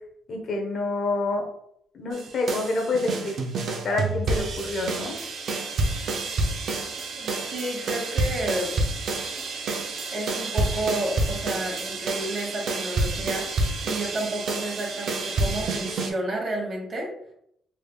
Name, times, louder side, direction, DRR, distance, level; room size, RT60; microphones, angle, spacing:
voice 1, 0.3-1.5 1.9-3.4 3.8-5.2, left 2 dB, 60° left, 2 dB, 0.9 m, -27 dB
sound 1, 2.1-16.1, right 2 dB, 65° right, 0.6 m, -29 dB
voice 2, 7.2-8.7 10.1-13.6 13.8-17.1, right 1 dB, 45° right, -2 dB, 1.2 m, -31 dB
3.5 x 3.3 x 2.3 m, 0.71 s
cardioid pair, 90°, 0 cm